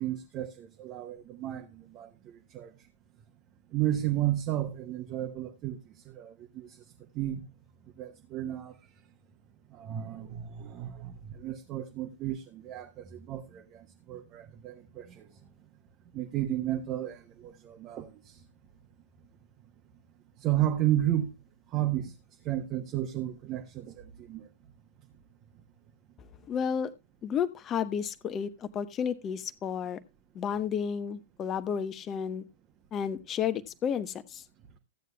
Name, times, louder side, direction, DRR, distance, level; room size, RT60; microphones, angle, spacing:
voice 1, 0.0-2.7 3.7-6.8 7.1-7.4 8.0-8.8 9.7-15.3 16.1-18.4 20.4-21.3 21.7-22.1 22.4-24.5, right 13 dB, 30° right, 1.2 m, -33 dB
voice 2, 26.5-26.9 27.2-30.0 30.3-32.4 32.9-34.4, left 7 dB, 25° left, 1.0 m, -32 dB
15.5 x 9.2 x 2.3 m
figure-of-eight pair, 100°, 0 cm